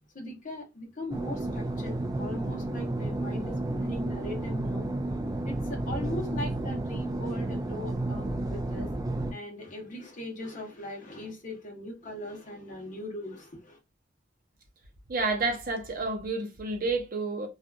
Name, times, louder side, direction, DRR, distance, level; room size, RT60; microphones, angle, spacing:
voice 1, 0.1-4.9 5.5-8.9 9.3-13.8, left 1 dB, 45° left, 0.8 m, -39 dB
sound 1, 1.1-9.3, right 1 dB, 20° right, 0.3 m, -32 dB
voice 2, 15.1-17.5, right 3 dB, 50° right, 0.7 m, -30 dB
2.7 x 2.4 x 2.2 m
head